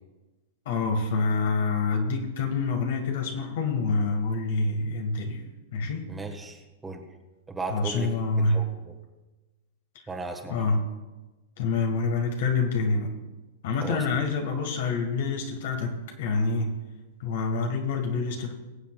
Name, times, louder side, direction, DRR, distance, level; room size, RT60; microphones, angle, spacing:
voice 1, 0.6-6.1 7.7-8.7 10.5-10.9 11.6-13.2 13.6-16.8 17.2-18.5, left 3 dB, 65° left, 4 dB, 1.7 m, -27 dB
voice 2, 6.1-7.1 7.5-8.1 8.5-8.9 10.1-10.6 13.8-14.0, right 3 dB, 10° right, 3 dB, 1.5 m, -36 dB
22.0 x 7.6 x 2.4 m, 1.2 s
hypercardioid pair, 115°, 0 cm